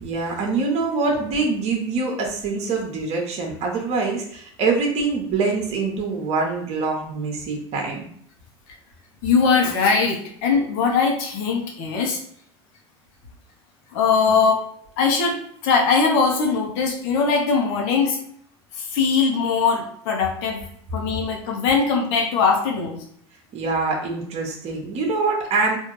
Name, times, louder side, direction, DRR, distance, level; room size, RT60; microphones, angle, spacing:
voice 1, 0.0-8.1 23.5-25.8, right 4 dB, 50° right, 1 dB, 0.9 m, -24 dB
voice 2, 9.2-12.2 13.9-14.6 15.0-15.4 15.6-18.2 18.7-20.6 20.9-23.0, left 5 dB, 70° left, 2 dB, 0.9 m, -20 dB
3.6 x 2.6 x 3.0 m, 0.64 s
hypercardioid pair, 80°, 14 cm